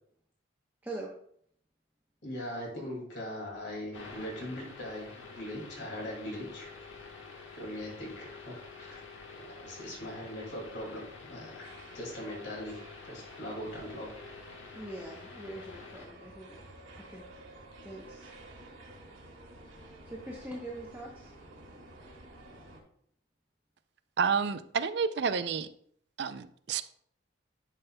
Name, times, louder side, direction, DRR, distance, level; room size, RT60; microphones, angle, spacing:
voice 1, 2.2-6.7 7.6-9.0 9.4-11.0 11.3-12.8 13.1-14.1, left 1 dB, 60° left, -2 dB, 2.2 m, -40 dB
sound 1, 3.4-22.8, right 2 dB, 90° right, 2.0 m, -54 dB
sound 2, 3.9-16.1, left 4 dB, 85° left, 1.3 m, -48 dB
voice 2, 14.7-16.6 17.0-17.2 17.8-18.3 20.0-21.3, right 1 dB, 10° right, -3 dB, 0.8 m, -43 dB
voice 3, 24.2-25.7 26.2-26.8, right 6 dB, 60° right, 12 dB, 0.4 m, -30 dB
10.5 x 5.5 x 2.2 m, 0.65 s
head